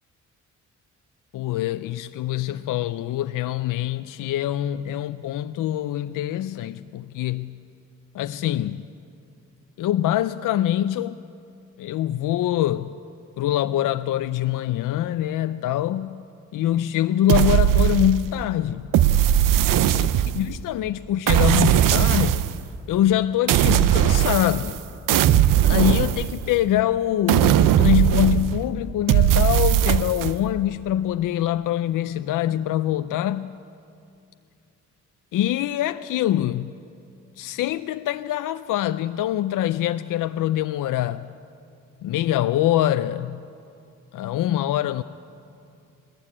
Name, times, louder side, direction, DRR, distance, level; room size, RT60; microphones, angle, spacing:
voice 1, 1.3-7.6 8.1-8.8 9.8-11.2 11.8-12.9 13.4-16.2 16.5-18.9 20.0-20.1 20.4-22.5 22.9-24.8 25.6-33.6 35.3-36.7 37.4-41.3 42.0-43.5 44.1-45.0, left 12 dB, 80° left, 0.5 m, -24 dB
sound 1, 17.3-18.4 18.9-20.6 21.3-22.6 23.5-24.8 25.1-26.7 27.3-28.6 29.1-30.3, right 11 dB, 90° right, 0.6 m, -19 dB
19.5 x 14.5 x 9.7 m
cardioid pair, 85°, 31 cm